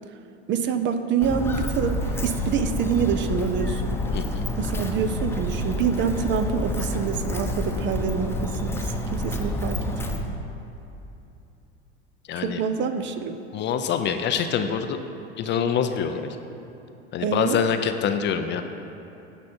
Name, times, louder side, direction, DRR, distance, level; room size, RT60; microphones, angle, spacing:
voice 1, 0.5-4.0 4.6-10.2 12.3-13.4 17.2-17.6, right 6 dB, 35° right, 9 dB, 0.6 m, -26 dB
Walk footsteps, 1.2-10.2, left 1 dB, 5° left, 0.9 m, -28 dB
voice 2, 4.1-4.4 12.3-12.6 13.5-15.0 15.4-16.4 17.1-18.6, left 7 dB, 35° left, 8 dB, 0.6 m, -25 dB
15.0 x 5.3 x 4.4 m, 2.8 s
hypercardioid pair, 85°, 34 cm